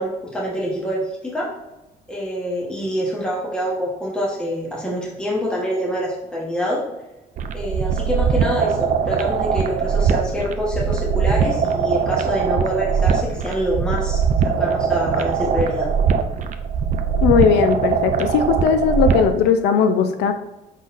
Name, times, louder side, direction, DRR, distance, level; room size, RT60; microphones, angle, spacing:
voice 1, 0.0-1.5 2.1-6.8 7.5-15.9, equal, 5° left, -5 dB, 1.0 m, -25 dB
sound 1, 7.4-19.4, right 6 dB, 50° right, 0.5 m, -21 dB
voice 2, 17.2-20.3, left 6 dB, 85° left, 8 dB, 0.5 m, -18 dB
5.5 x 3.8 x 2.5 m, 0.99 s
cardioid pair, 110°, 17 cm